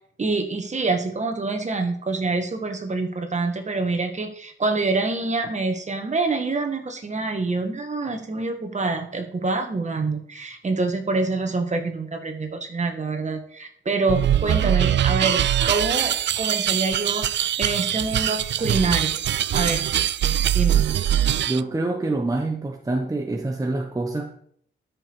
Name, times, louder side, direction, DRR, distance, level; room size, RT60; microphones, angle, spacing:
voice 1, 0.2-19.2 19.5-19.9 20.5-20.8, right 3 dB, 35° right, 5 dB, 2.0 m, -26 dB
sound 1, 14.1-21.6, right 11 dB, 60° right, 0.4 m, -22 dB
voice 2, 21.5-24.4, right 2 dB, 15° right, 3 dB, 1.1 m, -26 dB
13.0 x 6.8 x 4.9 m, 0.63 s
wide cardioid pair, 135°, 20 cm